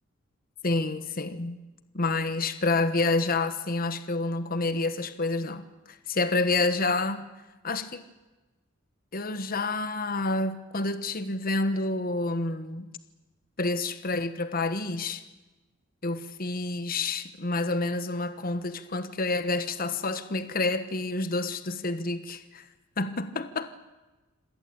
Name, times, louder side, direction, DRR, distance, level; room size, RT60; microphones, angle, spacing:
voice 1, 0.6-1.6 1.9-7.3 7.6-8.0 9.1-12.9 13.6-15.2 16.0-22.6 23.0-23.7, left 3 dB, 45° left, 11 dB, 1.2 m, -28 dB
26.5 x 18.0 x 8.7 m, 1.1 s
head